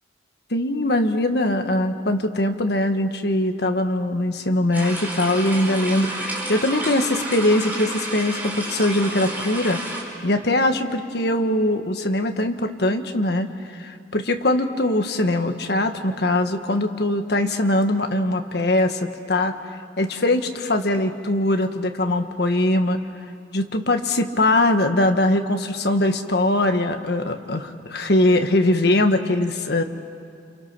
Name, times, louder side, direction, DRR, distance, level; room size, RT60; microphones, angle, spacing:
voice 1, 0.5-9.8 10.2-19.5 20.0-23.0 23.5-29.8, left 1 dB, 60° left, 6 dB, 1.4 m, -21 dB
sound 1, 4.7-10.0, right 1 dB, 10° right, 4.2 m, -30 dB
29.0 x 27.5 x 6.0 m, 2.4 s
head